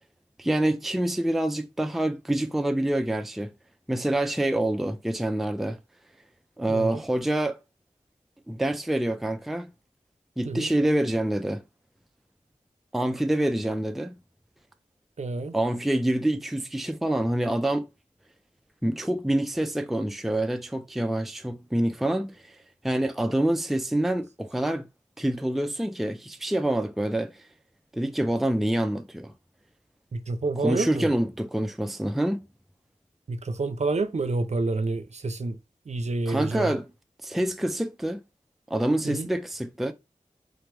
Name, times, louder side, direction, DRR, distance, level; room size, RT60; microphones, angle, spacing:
voice 1, 0.4-3.5 3.9-5.8 6.6-7.6 8.5-9.7 10.4-11.6 12.9-14.2 15.5-17.9 18.8-22.6 22.8-24.9 25.2-27.4 27.9-29.3 30.6-32.4 36.3-36.9 37.2-38.2 38.7-39.9, right 1 dB, ahead, 0.4 m, -26 dB
voice 2, 6.7-7.0 10.5-10.7 15.2-15.5 30.1-31.1 33.3-35.6 35.9-36.7 39.0-39.3, right 3 dB, 60° right, 0.6 m, -28 dB
3.8 x 3.0 x 3.3 m
wide cardioid pair, 55°, 13 cm